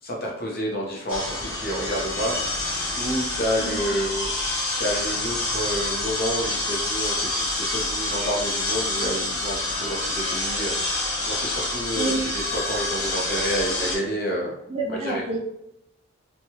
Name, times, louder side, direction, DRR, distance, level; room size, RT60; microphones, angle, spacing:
voice 1, 0.0-4.3 4.8-14.5 14.9-15.2, equal, 45° left, -2 dB, 0.8 m, -29 dB
sound 1, 1.1-14.0, left 2 dB, 85° left, 0.9 m, -27 dB
voice 2, 12.0-12.4 14.7-15.4, right 2 dB, 30° right, 0 dB, 0.4 m, -28 dB
3.1 x 2.3 x 2.8 m, 0.82 s
head